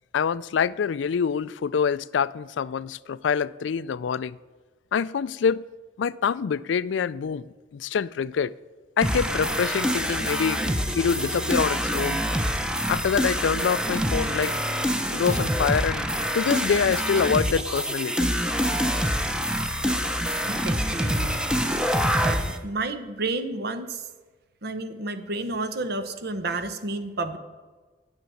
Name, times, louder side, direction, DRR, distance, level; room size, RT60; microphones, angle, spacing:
voice 1, 0.1-4.4 4.9-5.6 6.0-8.5 9.0-12.2 12.9-14.5 15.1-16.0 16.3-18.3, left 6 dB, 85° left, 0.4 m, -25 dB
sound 1, 9.0-22.6, equal, 5° right, 0.8 m, -26 dB
voice 2, 19.8-21.4 22.1-24.1 24.6-27.4, right 3 dB, 60° right, 1.0 m, -31 dB
9.6 x 7.5 x 9.1 m
head